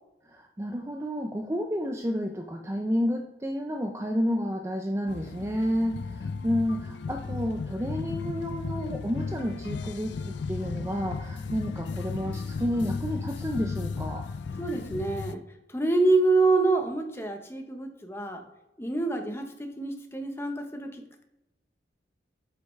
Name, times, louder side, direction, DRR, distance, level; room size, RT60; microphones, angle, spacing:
voice 1, 0.3-14.2, equal, 15° right, 3 dB, 0.4 m, -30 dB
sound 1, 5.1-15.3, left 4 dB, 70° left, 0.4 m, -35 dB
voice 2, 14.6-15.4 15.7-18.4 18.8-21.2, right 3 dB, 15° left, 4 dB, 0.9 m, -26 dB
8.0 x 5.5 x 3.2 m, 0.94 s
head